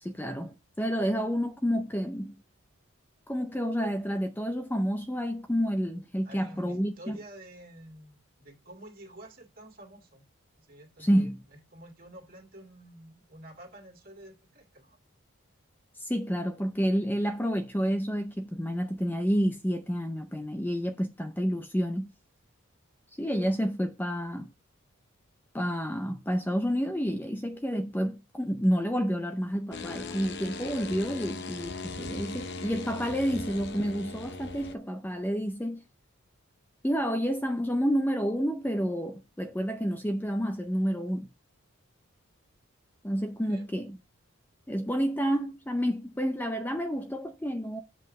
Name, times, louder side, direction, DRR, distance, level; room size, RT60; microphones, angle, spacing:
voice 1, 0.0-2.4 3.3-7.2 11.0-11.4 16.0-22.1 23.2-24.5 25.5-35.8 36.8-41.3 43.0-44.0 44.7-47.8, equal, 10° left, 0.5 m, -29 dB
voice 2, 6.2-10.3 10.6-15.0 43.4-43.8, right 1 dB, 40° right, 2.2 m, -49 dB
sound 1, 29.7-34.7, left 3 dB, 50° left, 0.7 m, -39 dB
7.7 x 5.6 x 5.3 m
head